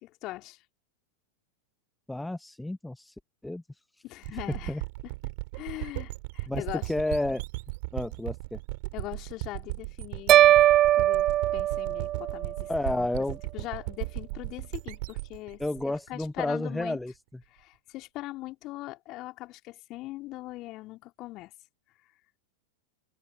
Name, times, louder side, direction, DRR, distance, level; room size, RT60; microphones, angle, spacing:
voice 1, 0.0-0.6 4.0-5.1 5.5-6.9 8.9-10.6 10.9-15.6 16.1-17.0 17.5-21.5, left 18 dB, 40° left, 3.5 m, -41 dB
voice 2, 2.1-3.1 3.4-3.6 4.7-4.8 5.8-5.9 6.5-6.6 6.9-7.4 7.9-8.6 12.7-13.4 15.6-17.1, left 1 dB, 5° left, 1.1 m, -31 dB
sound 1, 4.2-16.8, right 26 dB, 50° right, 4.2 m, -37 dB
sound 2, 10.3-12.6, right 13 dB, 30° right, 0.4 m, -20 dB
figure-of-eight pair, 90°, 0 cm